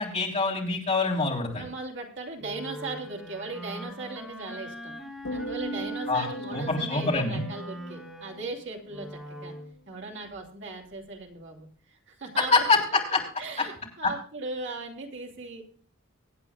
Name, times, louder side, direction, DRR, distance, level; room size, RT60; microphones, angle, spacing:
voice 1, 0.0-1.6 6.1-6.3 6.5-7.4 12.5-12.8 13.1-13.2 14.0-14.1, left 3 dB, 30° left, -2 dB, 3.6 m, -25 dB
voice 2, 1.6-4.9 5.3-9.5 9.9-12.8 13.4-15.6, right 3 dB, 55° right, 1 dB, 2.7 m, -38 dB
Wind instrument woodwind instrument, 2.4-9.7, right 1 dB, 5° right, 3.4 m, -41 dB
sound 1, 5.2-9.6 9.9-10.4, left 1 dB, 75° left, 1.5 m, -40 dB
24.0 x 8.8 x 2.4 m, 0.43 s
head